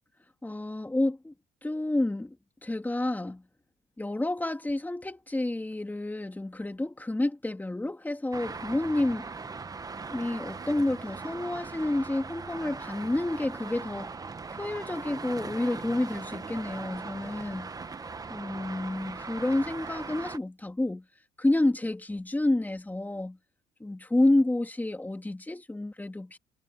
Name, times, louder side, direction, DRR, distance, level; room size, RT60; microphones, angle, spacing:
voice 1, 0.4-1.3 1.6-2.4 2.6-3.4 4.0-9.3 10.1-14.2 14.5-17.7 18.3-21.0 21.4-23.4 23.8-26.4, left 2 dB, 10° left, 2.5 m, -29 dB
Traffic noise roadway noise, 8.3-20.4, right 4 dB, 20° right, 1.0 m, -40 dB
cardioid pair, 110°, 17 cm